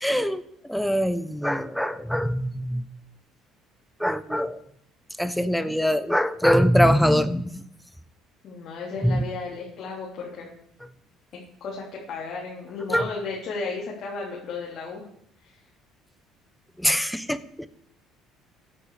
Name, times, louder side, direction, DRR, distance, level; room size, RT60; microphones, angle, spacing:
voice 1, 0.0-0.4 0.7-2.8 4.0-4.6 5.2-7.5 9.0-9.2 12.9-13.0 16.8-17.7, equal, ahead, 12 dB, 1.0 m, -23 dB
voice 2, 8.4-10.5 11.6-15.0 15.4-15.5, left 4 dB, 55° left, -4 dB, 3.6 m, -34 dB
15.5 x 10.0 x 5.0 m, 0.69 s
cardioid pair, 115°, 0 cm